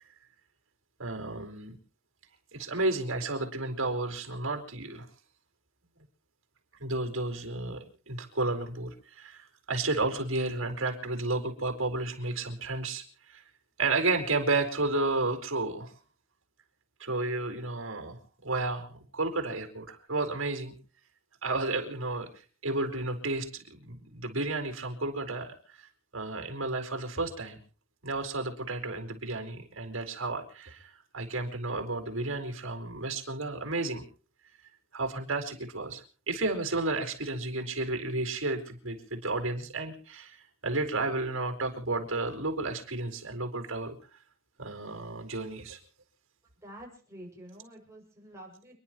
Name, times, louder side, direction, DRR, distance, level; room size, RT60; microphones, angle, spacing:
voice 1, 1.0-1.7 2.5-5.1 6.8-13.4 13.8-15.9 17.0-20.7 21.4-22.3 22.6-25.8 26.1-27.6 28.0-34.0 34.9-43.9 44.6-45.8, right 2 dB, 70° right, 4 dB, 4.6 m, -32 dB
voice 2, 46.6-48.7, right 1 dB, 15° right, -1 dB, 6.7 m, -48 dB
30.0 x 11.0 x 3.1 m, 0.41 s
head